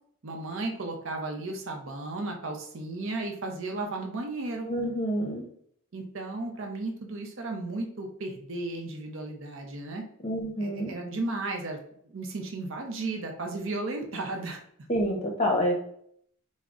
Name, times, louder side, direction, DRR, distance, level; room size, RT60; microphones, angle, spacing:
voice 1, 0.2-4.7 5.9-10.1 10.6-11.8 12.0-14.6, right 2 dB, 60° right, 2 dB, 0.7 m, -34 dB
voice 2, 4.7-5.4 10.2-10.9 14.9-15.7, equal, 30° left, 1 dB, 0.7 m, -27 dB
3.6 x 2.1 x 3.6 m, 0.65 s
head